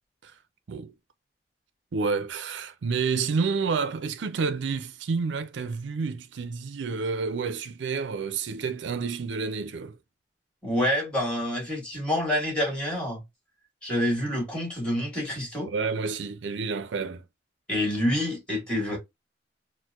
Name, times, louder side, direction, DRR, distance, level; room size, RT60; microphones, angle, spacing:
voice 1, 1.9-10.0 15.6-17.2, right 5 dB, 85° right, 0.5 m, -29 dB
voice 2, 10.6-13.2 13.8-15.7 17.7-19.0, left 1 dB, 5° left, 1.8 m, -27 dB
4.3 x 2.1 x 2.3 m
head